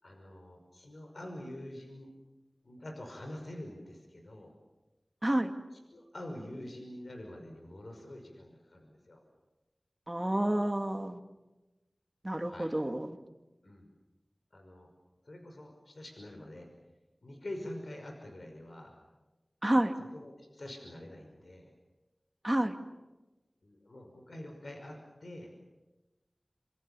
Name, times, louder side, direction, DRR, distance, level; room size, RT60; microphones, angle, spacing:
voice 1, 0.0-2.1 2.6-4.5 5.9-9.2 12.4-12.7 13.6-13.9 14.5-14.9 15.2-16.7 17.2-19.0 20.0-21.7 23.6-25.5, left 1 dB, 70° left, 3 dB, 5.7 m, -46 dB
voice 2, 5.2-5.5 10.1-11.2 12.2-13.2 19.6-19.9 22.4-22.8, right 1 dB, 25° right, 6 dB, 2.4 m, -29 dB
27.0 x 26.5 x 7.0 m, 1.1 s
wide cardioid pair, 60°, 0 cm